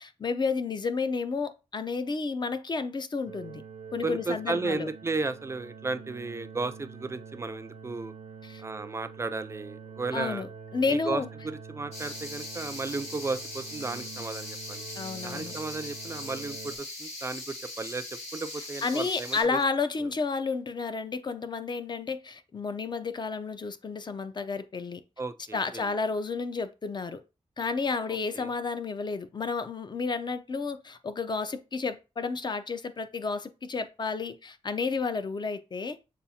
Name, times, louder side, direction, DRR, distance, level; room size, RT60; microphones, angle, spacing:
voice 1, 0.0-3.6 3.9-4.9 8.4-8.6 10.1-11.3 15.0-15.5 18.8-25.0 25.5-27.2 27.6-36.0, left 4 dB, 40° left, 0.5 m, -31 dB
sound 1, 3.3-16.8, right 6 dB, 85° right, 0.6 m, -45 dB
voice 2, 4.0-8.1 8.6-10.4 10.9-14.8 15.2-18.0 18.3-19.6 20.0-20.1 25.2-25.9 28.1-28.5, right 3 dB, 25° right, 0.3 m, -34 dB
sound 2, 11.9-19.4, left 2 dB, 65° left, 1.9 m, -40 dB
6.7 x 2.4 x 2.7 m
wide cardioid pair, 90°, 11 cm